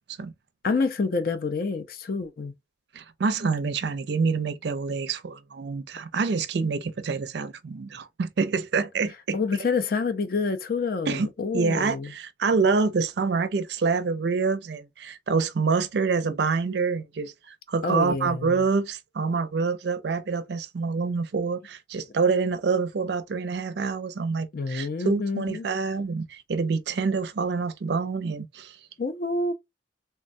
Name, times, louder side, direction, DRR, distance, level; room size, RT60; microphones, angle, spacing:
voice 1, 0.6-2.5 9.3-12.1 17.8-18.6 24.5-25.7 29.0-29.5, left 4 dB, 50° left, 0.4 m, -27 dB
voice 2, 2.9-9.4 11.1-11.3 11.5-28.8, right 4 dB, 60° right, 0.4 m, -26 dB
3.3 x 2.2 x 2.5 m
head